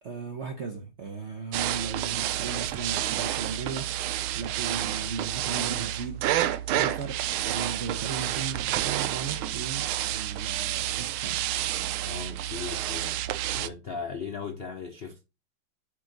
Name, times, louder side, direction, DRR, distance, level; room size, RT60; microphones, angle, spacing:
voice 1, 0.0-4.1 4.3-6.4 6.7-11.6, right 5 dB, 65° right, 0.7 m, -37 dB
sound 1, 1.5-13.7, right 13 dB, 85° right, 1.4 m, -29 dB
voice 2, 12.0-13.1 13.5-15.2, left 5 dB, 80° left, 0.5 m, -37 dB
8.0 x 3.7 x 3.9 m
omnidirectional pair, 2.2 m